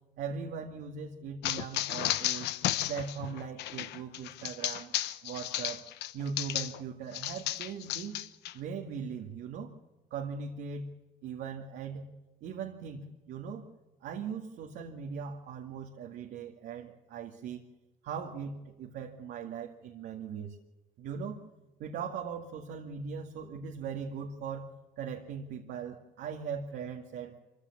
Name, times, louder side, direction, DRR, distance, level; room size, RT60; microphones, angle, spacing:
voice 1, 0.2-2.5 2.9-4.9 5.2-5.8 6.1-8.2 8.5-9.7 10.1-10.9 11.2-12.1 12.4-13.6 14.0-17.6 18.0-20.6 21.0-21.4 21.8-24.7 25.0-27.4, right 6 dB, 75° right, 1 dB, 2.2 m, -39 dB
sound 1, 1.4-6.8 7.1-8.5, left 14 dB, 85° left, 0.9 m, -33 dB
25.0 x 15.5 x 7.2 m, 1.1 s
cardioid pair, 110°, 17 cm